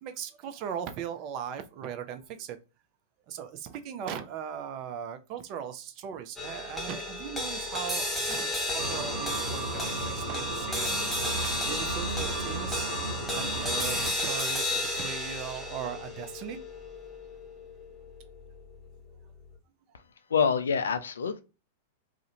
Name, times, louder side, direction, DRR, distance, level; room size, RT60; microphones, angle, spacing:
voice 1, 0.0-2.6 3.3-11.0 11.7-12.9 13.3-16.6, right 8 dB, 45° right, 0.5 m, -38 dB
sound 1, 6.4-18.9, left 1 dB, 5° left, 0.8 m, -33 dB
sound 2, 8.8-14.1, right 3 dB, 65° right, 1.0 m, -35 dB
voice 2, 20.3-21.4, left 6 dB, 75° left, 0.3 m, -26 dB
2.4 x 2.1 x 2.8 m
figure-of-eight pair, 100°, 0 cm